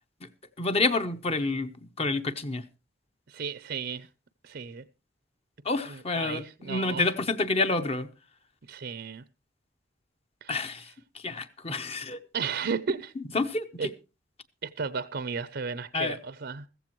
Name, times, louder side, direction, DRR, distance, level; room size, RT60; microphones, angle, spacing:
voice 1, 0.6-2.6 5.6-8.1 10.5-10.9 11.1-12.2 13.3-13.9 15.9-16.2, left 3 dB, 30° left, 0.9 m, -28 dB
voice 2, 3.3-4.1 4.4-4.8 5.9-7.1 8.7-9.2 10.4-10.7 12.3-13.1 13.8-13.9 14.6-16.7, right 5 dB, 55° right, 0.6 m, -34 dB
15.0 x 15.0 x 3.1 m
head